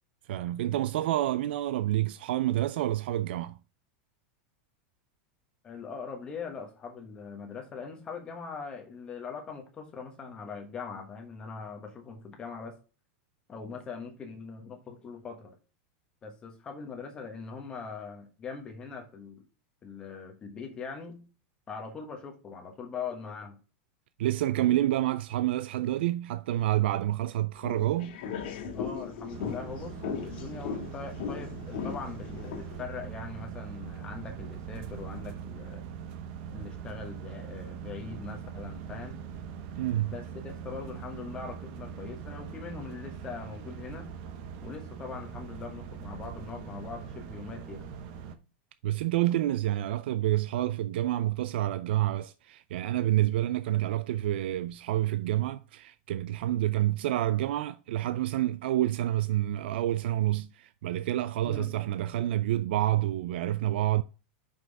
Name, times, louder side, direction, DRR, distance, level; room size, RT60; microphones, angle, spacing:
voice 1, 0.3-3.6 24.2-28.2 39.8-40.1 48.8-64.0, right 14 dB, 70° right, 0.4 m, -28 dB
voice 2, 5.6-12.7 13.5-15.6 16.2-19.4 19.8-21.2 21.7-23.6 28.7-35.8 36.5-39.1 40.1-44.2 44.6-47.9 61.4-61.7, left 5 dB, 15° left, 1.3 m, -41 dB
sound 1, 27.6-32.8, left 6 dB, 55° left, 1.8 m, -38 dB
sound 2, 29.3-48.4, right 7 dB, 40° right, 0.8 m, -42 dB
6.1 x 5.5 x 4.6 m
supercardioid pair, 180°, 6 cm